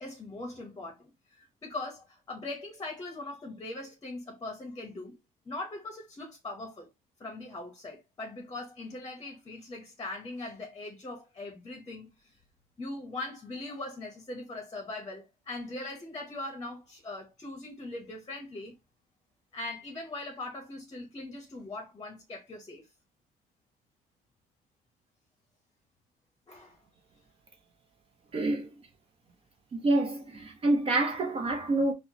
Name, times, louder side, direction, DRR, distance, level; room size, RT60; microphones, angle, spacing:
voice 1, 0.0-6.9 7.2-12.4 12.8-18.7 19.5-22.9 26.5-26.8, left 2 dB, 25° left, 0.8 m, -41 dB
voice 2, 28.3-28.7 29.7-31.9, right 2 dB, 35° right, 0.6 m, -27 dB
4.3 x 2.1 x 2.8 m
cardioid pair, 110°, 17 cm